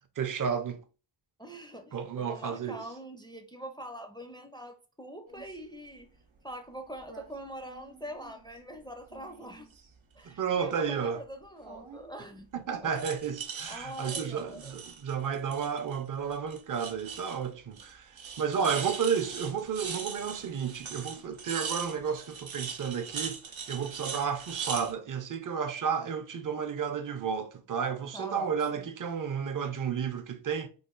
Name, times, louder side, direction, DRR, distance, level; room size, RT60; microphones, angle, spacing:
voice 1, 0.2-0.8 1.9-2.8 10.2-11.2 12.5-23.4 23.7-30.7, right 7 dB, 45° right, 0.5 m, -32 dB
voice 2, 1.4-6.1 6.4-9.7 10.2-12.5 12.8-13.0 13.7-14.8 28.1-28.9, right 1 dB, 10° left, 0.4 m, -43 dB
sound 1, 5.3-5.5 7.0-7.3 7.7-8.6 9.0-10.0 11.7-12.1 12.9-16.0 16.3-17.5 17.8-17.9 18.2-24.9, right 6 dB, 85° right, 0.7 m, -41 dB
3.2 x 2.3 x 3.6 m
wide cardioid pair, 105°, 46 cm